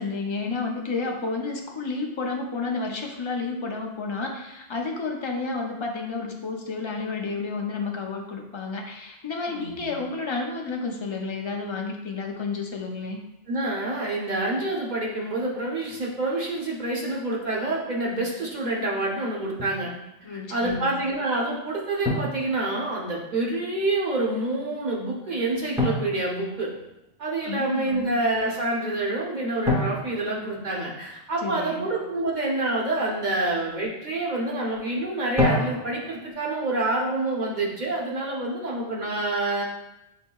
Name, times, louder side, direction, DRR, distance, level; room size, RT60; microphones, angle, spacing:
voice 1, 0.0-13.2 20.2-21.0 27.4-28.1 31.4-31.9, left 3 dB, 40° left, 1 dB, 0.4 m, -31 dB
voice 2, 9.5-10.0 13.5-19.9 20.5-26.7 27.2-39.6, right 2 dB, 50° right, -3 dB, 1.0 m, -27 dB
Drum, 19.6-19.9 22.0-23.2 25.8-27.2 29.7-31.4 35.4-36.3, left 2 dB, 5° right, 0.6 m, -29 dB
6.6 x 2.7 x 2.3 m, 0.89 s
omnidirectional pair, 1.1 m